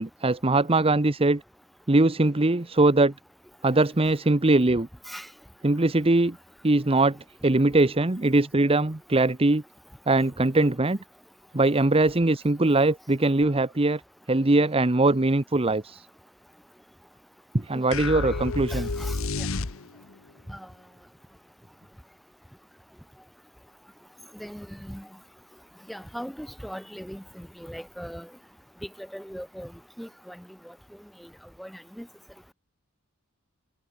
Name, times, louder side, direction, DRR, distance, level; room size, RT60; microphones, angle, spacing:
voice 1, 0.0-1.4 1.9-3.1 3.6-4.9 5.6-6.4 6.6-7.2 7.4-9.6 10.1-11.0 11.5-14.0 14.3-16.1 17.5-18.9, right 2 dB, 25° right, 1.0 m, -21 dB
sound 1, 17.9-20.2, left 3 dB, 70° left, 1.1 m, -30 dB
voice 2, 18.7-19.2 20.5-20.7 24.3-25.0 25.9-28.3 29.1-29.7 30.0-30.4 31.6-32.1, equal, ahead, 3.6 m, -39 dB
head